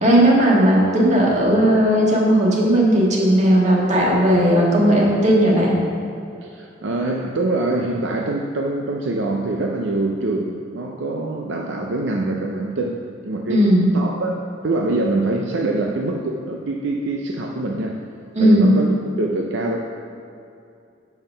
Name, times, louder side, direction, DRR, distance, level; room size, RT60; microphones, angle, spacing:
voice 1, 0.0-5.7 13.5-13.9 18.3-18.7, equal, 40° right, -3 dB, 1.6 m, -16 dB
voice 2, 6.4-13.7 13.9-18.0 18.4-18.9 19.2-19.8, right 2 dB, 70° right, 1 dB, 0.5 m, -24 dB
7.0 x 5.7 x 5.5 m, 2.6 s
head